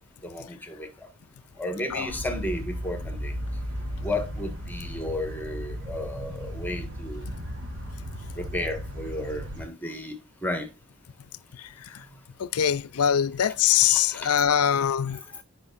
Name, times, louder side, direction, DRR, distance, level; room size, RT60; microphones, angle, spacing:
voice 1, 0.2-0.9 1.6-3.3 4.0-7.2 8.4-10.1 10.4-10.7 13.9-14.4, left 1 dB, 10° left, 1.5 m, -33 dB
sound 1, 2.1-9.7, equal, 55° right, 3.1 m, -35 dB
voice 2, 11.5-12.0 12.4-15.2, left 9 dB, 90° left, 0.5 m, -23 dB
15.0 x 5.2 x 2.5 m
head